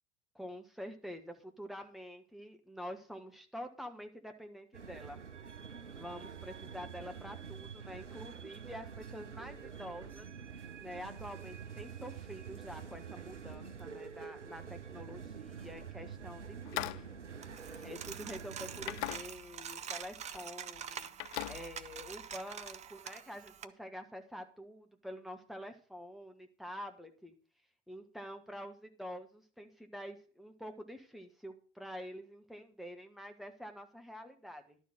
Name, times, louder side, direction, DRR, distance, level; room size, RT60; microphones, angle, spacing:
voice 1, 0.3-5.2 5.9-10.3 10.8-17.1 17.5-27.3 27.9-34.8, equal, ahead, 4 dB, 1.4 m, -47 dB
sound 1, 4.7-19.1, right 6 dB, 90° right, 0.6 m, -47 dB
sound 2, 16.6-18.3 18.8-19.7 20.0-20.4 20.8-22.4, left 17 dB, 45° left, 0.4 m, -42 dB
Coin (dropping), 17.4-23.6, right 8 dB, 20° right, 0.6 m, -46 dB
11.5 x 4.5 x 7.9 m, 0.41 s
figure-of-eight pair, 80°, 35 cm